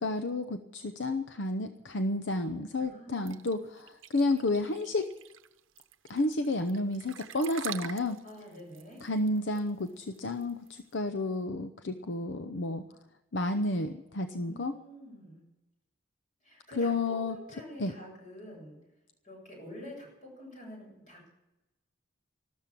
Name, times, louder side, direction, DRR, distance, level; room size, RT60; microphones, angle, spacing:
voice 1, 0.0-5.1 6.1-8.2 9.0-12.8 13.3-14.7 16.8-17.4 17.8-17.9, left 2 dB, 65° left, 9 dB, 0.7 m, -31 dB
voice 2, 2.8-3.4 8.2-9.0 14.3-15.4 16.4-18.8 19.2-21.3, left 1 dB, 40° left, -1 dB, 7.9 m, -47 dB
sound 1, 3.3-10.9, right 9 dB, 80° right, 0.8 m, -45 dB
14.0 x 13.0 x 7.5 m, 1.0 s
head